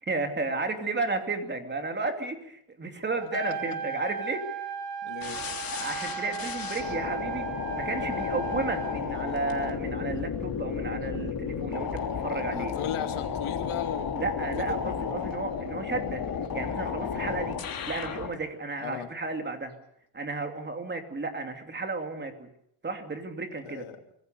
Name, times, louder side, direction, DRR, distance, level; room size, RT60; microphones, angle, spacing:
voice 1, 0.0-4.4 5.7-7.4 7.7-12.7 14.1-16.2 16.5-17.6 17.9-19.7 20.1-22.5 22.8-23.9, right 3 dB, 20° right, 6 dB, 2.5 m, -33 dB
Trumpet, 3.2-9.0, right 6 dB, 45° right, 3.4 m, -36 dB
voice 2, 5.0-5.4 12.3-14.8 18.8-19.1 23.7-24.0, left 10 dB, 75° left, 5 dB, 2.8 m, -37 dB
sound 1, 5.2-18.3, left 7 dB, 45° left, 3.2 m, -33 dB
25.5 x 20.5 x 6.7 m, 0.73 s
cardioid pair, 160°, 49 cm